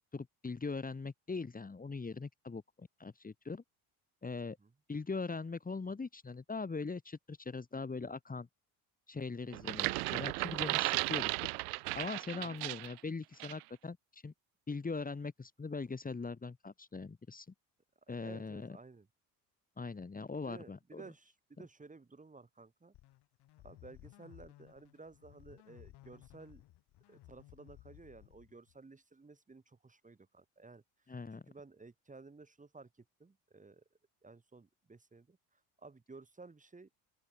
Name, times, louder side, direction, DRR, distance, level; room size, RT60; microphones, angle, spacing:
voice 1, 0.1-3.6 4.2-4.6 4.9-8.5 9.1-11.3 11.9-14.3 14.7-17.5 18.1-18.8 19.8-21.0 31.1-31.4, left 4 dB, 20° left, 2.2 m, -41 dB
sound 1, 9.5-13.0 13.4-13.6, right 27 dB, 85° right, 1.1 m, -35 dB
voice 2, 18.1-19.1 20.4-22.9 23.6-26.6 27.1-30.8 31.5-33.8 34.2-36.9, right 3 dB, 15° right, 2.4 m, -55 dB
sound 2, 22.9-28.8, left 15 dB, 65° left, 4.5 m, -58 dB
open air
supercardioid pair, 85°, 44 cm